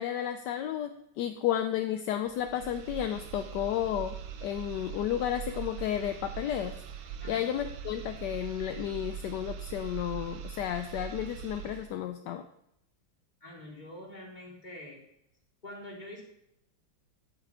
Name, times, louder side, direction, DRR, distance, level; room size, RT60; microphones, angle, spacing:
voice 1, 0.0-12.5, left 10 dB, 75° left, 8 dB, 1.1 m, -32 dB
sound 1, 2.3-11.9, right 8 dB, 85° right, 1.6 m, -42 dB
voice 2, 13.4-15.0 15.6-16.2, left 1 dB, 20° left, -2 dB, 2.5 m, -45 dB
11.0 x 8.6 x 3.6 m, 0.78 s
omnidirectional pair, 2.2 m